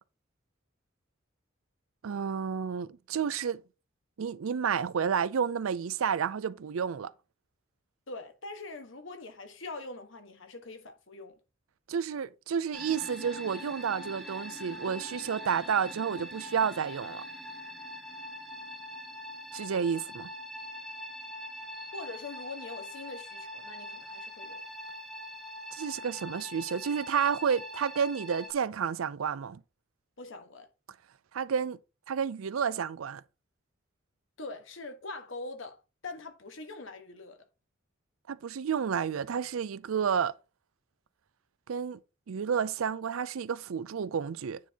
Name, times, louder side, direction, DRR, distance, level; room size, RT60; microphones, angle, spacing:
voice 1, 2.0-3.6 4.2-7.1 11.9-17.2 19.5-20.3 25.7-29.6 31.3-31.8 32.1-33.2 38.3-40.3 41.7-42.0 42.3-44.6, right 7 dB, 90° right, 0.4 m, -30 dB
voice 2, 8.1-11.4 21.9-24.6 30.2-30.7 34.4-37.4, left 3 dB, 70° left, 1.4 m, -43 dB
sound 1, 12.7-28.5, left 1 dB, ahead, 0.8 m, -43 dB
9.3 x 4.4 x 2.9 m
head